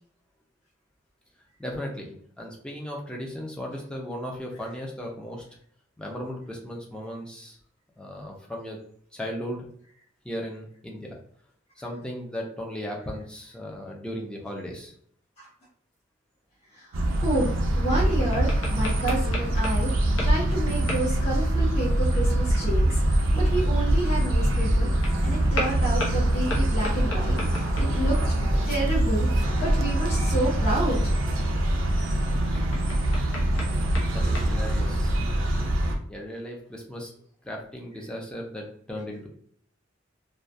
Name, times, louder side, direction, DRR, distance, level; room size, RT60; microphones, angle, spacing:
voice 1, 1.6-5.4 6.0-7.6 8.0-8.8 9.1-9.7 10.2-11.2 11.8-14.9 34.1-35.2 36.1-37.1 37.4-39.3, equal, 5° left, -1 dB, 0.5 m, -36 dB
voice 2, 16.7-17.5 17.8-24.9 25.2-28.2 28.6-31.1 35.3-35.5, right 1 dB, 35° left, -7 dB, 0.8 m, -30 dB
sound 1, 16.9-35.9, right 1 dB, 75° right, 0.5 m, -24 dB
sound 2, 17.7-20.5 20.9-21.2 25.0-25.2 25.5-28.2 31.2-34.5, left 1 dB, 80° left, 0.8 m, -36 dB
2.3 x 2.2 x 2.6 m, 0.63 s
head